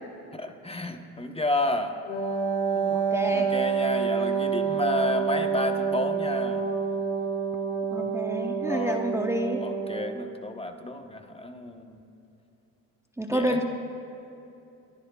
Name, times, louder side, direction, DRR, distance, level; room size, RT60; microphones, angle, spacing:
voice 1, 0.3-2.0 3.3-6.6 8.6-9.0 9.6-12.0 13.3-13.6, left 2 dB, 15° left, 5 dB, 1.1 m, -31 dB
Wind instrument woodwind instrument, 2.1-10.1, right 6 dB, 90° left, 2.4 m, -28 dB
voice 2, 2.8-3.5 7.9-9.6 13.2-13.6, right 1 dB, 5° right, 3 dB, 1.0 m, -29 dB
29.0 x 14.5 x 2.4 m, 2.8 s
hypercardioid pair, 60°, 42 cm